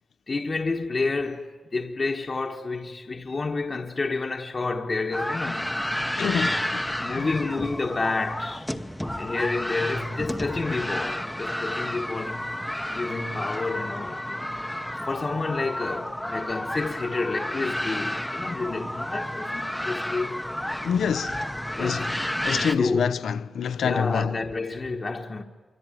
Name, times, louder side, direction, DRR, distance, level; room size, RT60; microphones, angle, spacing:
voice 1, 0.3-5.7 6.2-6.7 7.0-8.7 9.2-12.6 12.9-14.7 14.9-20.5 21.8-22.1 22.7-23.1 23.8-25.4, left 3 dB, 30° left, 1.3 m, -30 dB
sound 1, 5.1-22.7, left 1 dB, 5° left, 0.9 m, -31 dB
voice 2, 6.2-7.4 20.8-21.4 21.8-22.2 22.4-24.4, left 7 dB, 75° left, 0.8 m, -27 dB
26.0 x 24.5 x 9.2 m
wide cardioid pair, 140°, 0 cm